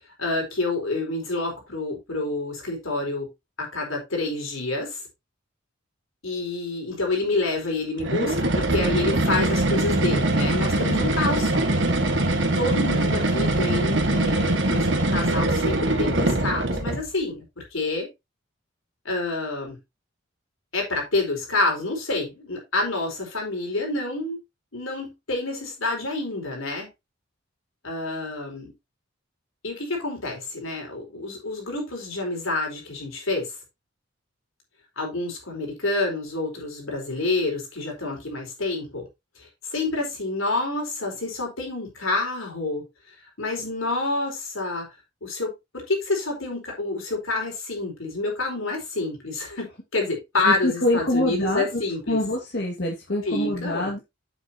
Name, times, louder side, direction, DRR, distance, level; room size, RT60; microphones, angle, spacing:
voice 1, 0.2-3.3 3.6-5.0 6.2-11.7 12.5-18.1 19.0-19.8 20.7-24.4 24.7-26.9 27.8-28.7 29.6-33.6 35.0-39.1 39.4-44.9 45.2-52.2 53.2-53.9, left 2 dB, 90° left, 4.5 m, -28 dB
sound 1, 8.0-17.1, right 1 dB, 60° right, 1.6 m, -22 dB
voice 2, 50.5-51.7 52.1-54.0, left 1 dB, 55° left, 2.1 m, -25 dB
9.1 x 7.7 x 2.9 m
head